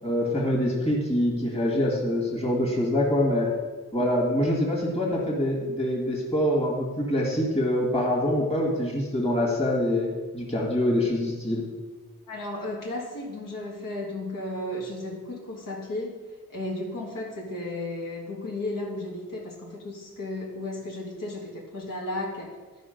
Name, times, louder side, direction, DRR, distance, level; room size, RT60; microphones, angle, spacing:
voice 1, 0.0-3.5 3.9-10.1 10.3-11.6, left 1 dB, 20° left, -3 dB, 2.1 m, -25 dB
voice 2, 12.3-16.2 16.5-22.6, left 2 dB, 70° left, -2 dB, 1.9 m, -34 dB
12.5 x 5.1 x 5.2 m, 1.3 s
wide cardioid pair, 175°, 34 cm